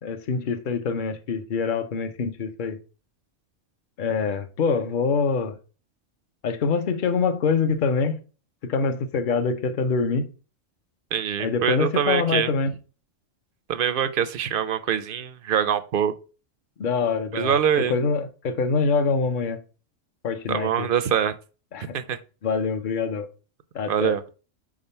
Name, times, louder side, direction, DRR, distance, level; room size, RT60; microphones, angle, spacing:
voice 1, 0.0-2.8 4.0-5.6 6.4-8.2 8.6-10.3 11.4-12.7 16.8-19.6 20.2-20.9 21.7-22.0 22.4-23.3 23.7-24.1, left 5 dB, 45° left, 0.8 m, -25 dB
voice 2, 11.1-12.5 13.7-16.1 17.3-18.0 20.5-21.3 21.9-22.2 23.9-24.2, right 8 dB, 60° right, 0.6 m, -24 dB
5.0 x 3.7 x 5.4 m
omnidirectional pair, 1.3 m